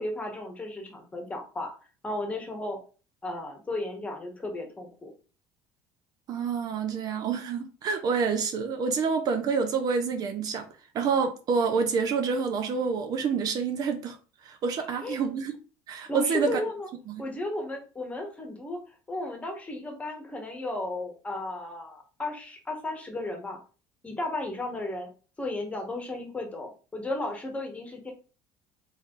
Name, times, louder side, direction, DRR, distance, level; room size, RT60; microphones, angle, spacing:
voice 1, 0.0-1.7 2.0-2.8 3.2-5.1 14.8-15.2 16.1-16.9 17.2-18.8 19.1-23.6 24.0-25.1 25.4-28.1, left 2 dB, 15° left, 1.3 m, -34 dB
voice 2, 6.3-10.7 10.9-14.2 14.4-15.6 15.9-16.6 17.1-17.2, right 5 dB, 50° right, 0.6 m, -27 dB
3.4 x 3.2 x 3.9 m
cardioid pair, 110°, 8 cm